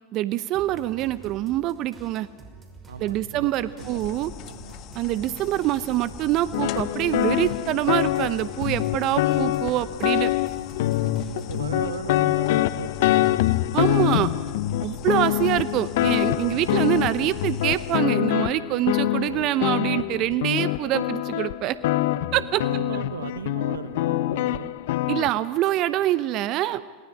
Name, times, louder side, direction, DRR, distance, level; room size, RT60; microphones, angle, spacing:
voice 1, 0.1-2.3 3.0-4.3 4.9-10.3 13.7-14.3 14.8-21.8 22.3-22.6 25.1-26.8, right 14 dB, 45° right, 15 dB, 0.8 m, -25 dB
sound 1, 0.5-11.7 12.1-13.5, right 4 dB, 20° right, 5.6 m, -48 dB
voice 2, 2.9-3.5 3.8-4.8 11.0-13.4 15.0-15.3 22.3-24.7, right 7 dB, 80° right, 14 dB, 1.2 m, -38 dB
sound 2, 3.8-18.0, left 9 dB, 45° left, 1.4 m, -40 dB
sound 3, 6.5-25.3, left 15 dB, 65° left, 0.8 m, -25 dB
27.5 x 19.0 x 9.5 m, 1.5 s
hypercardioid pair, 95°, 0 cm